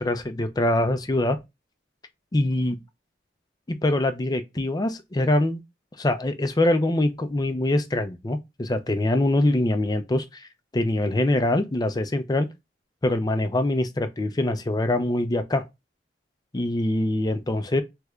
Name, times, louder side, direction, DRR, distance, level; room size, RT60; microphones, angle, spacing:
voice 1, 0.0-1.4 2.3-2.8 3.7-5.6 6.0-12.5 13.0-15.6 16.5-17.8, left 1 dB, 20° left, 0.5 m, -24 dB
3.4 x 3.1 x 2.3 m
head